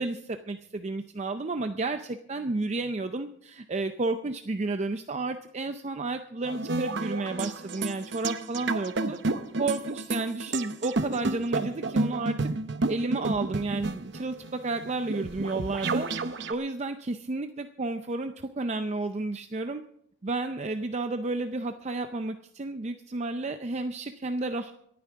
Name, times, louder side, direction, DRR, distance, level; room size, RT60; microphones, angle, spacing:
voice 1, 0.0-9.2 9.6-12.4 12.9-16.1 16.5-19.8 20.2-24.7, right 3 dB, 35° right, 8 dB, 0.5 m, -31 dB
sound 1, 6.4-16.5, right 3 dB, 65° right, 0.8 m, -31 dB
26.0 x 9.5 x 3.6 m, 0.70 s
head